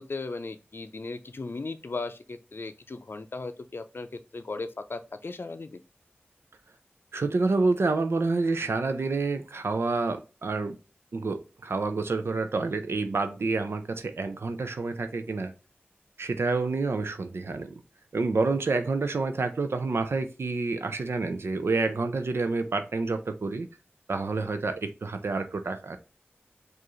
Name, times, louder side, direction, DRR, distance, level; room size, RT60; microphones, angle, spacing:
voice 1, 0.0-5.8, left 3 dB, 65° left, 0.5 m, -37 dB
voice 2, 7.1-10.8 11.1-15.5 16.2-17.7 18.1-23.7 24.1-26.0, right 3 dB, 80° right, 0.4 m, -28 dB
4.7 x 2.5 x 3.0 m
wide cardioid pair, 40°, 4 cm